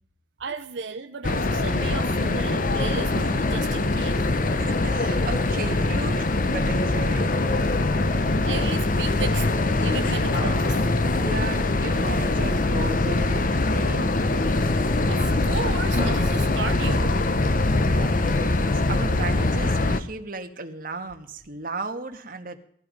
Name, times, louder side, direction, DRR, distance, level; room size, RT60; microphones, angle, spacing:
voice 1, 0.4-4.2 8.4-10.8 15.1-17.2, right 5 dB, 85° right, 7 dB, 0.8 m, -34 dB
sound 1, 1.2-20.0, left 2 dB, 50° left, 0.9 m, -23 dB
voice 2, 4.6-7.3 11.2-14.2 17.9-22.6, right 3 dB, 50° right, 5 dB, 1.7 m, -35 dB
sound 2, 10.3-12.3 16.0-19.1, left 1 dB, 65° left, 5.1 m, -39 dB
17.5 x 14.0 x 5.2 m, 0.64 s
head